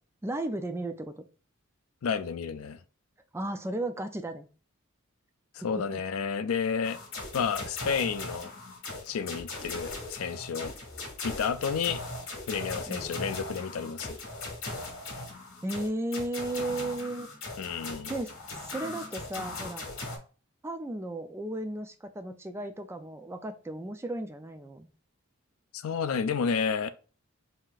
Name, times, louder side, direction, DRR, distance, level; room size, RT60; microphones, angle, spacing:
voice 1, 0.2-1.2 3.3-4.5 12.9-13.1 15.6-17.3 18.1-18.3 18.6-19.8 20.6-24.9, right 1 dB, 10° right, 0.3 m, -34 dB
voice 2, 2.0-2.8 5.5-7.0 7.3-8.5 9.1-10.8 11.2-12.0 12.5-14.2 17.6-18.1 25.7-26.9, left 6 dB, 90° left, 0.4 m, -31 dB
sound 1, 6.8-20.2, left 2 dB, 70° left, 1.4 m, -39 dB
5.6 x 2.7 x 2.4 m
head